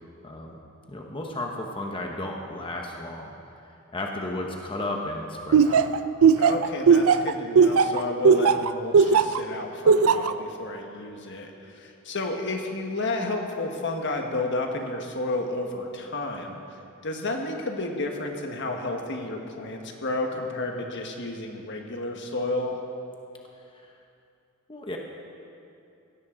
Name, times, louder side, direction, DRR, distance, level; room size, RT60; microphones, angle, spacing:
voice 1, 0.2-0.6 0.9-3.3 3.9-5.8 24.7-25.0, left 1 dB, 25° left, 1 dB, 1.0 m, -33 dB
Laughter, 5.5-9.4 9.9-10.3, right 6 dB, 80° right, 0.4 m, -17 dB
voice 2, 6.4-16.6 17.0-22.8, left 2 dB, 60° left, 3 dB, 1.4 m, -31 dB
17.0 x 15.0 x 3.8 m, 2.7 s
head